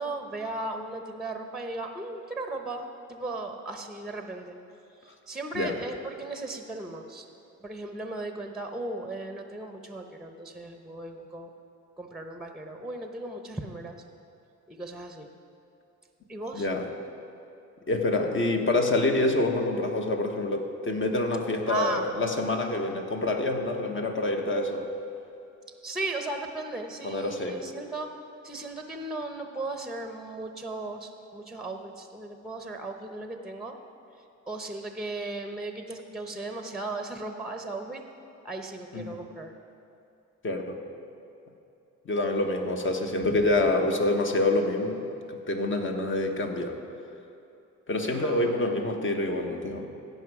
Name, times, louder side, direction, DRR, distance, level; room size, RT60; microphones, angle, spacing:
voice 1, 0.0-4.6 5.0-7.3 7.6-11.5 12.0-14.0 14.7-15.3 16.3-16.7 21.7-22.1 22.6-22.9 25.8-28.1 28.4-33.7 34.5-38.0 38.4-39.5 48.0-48.5, right 2 dB, ahead, 5 dB, 0.8 m, -36 dB
voice 2, 16.5-16.9 17.9-24.8 27.0-27.6 38.9-39.2 40.4-40.8 42.0-46.8 47.9-49.9, left 2 dB, 40° left, 3 dB, 1.3 m, -27 dB
16.0 x 5.5 x 4.8 m, 2.8 s
supercardioid pair, 75°, 31 cm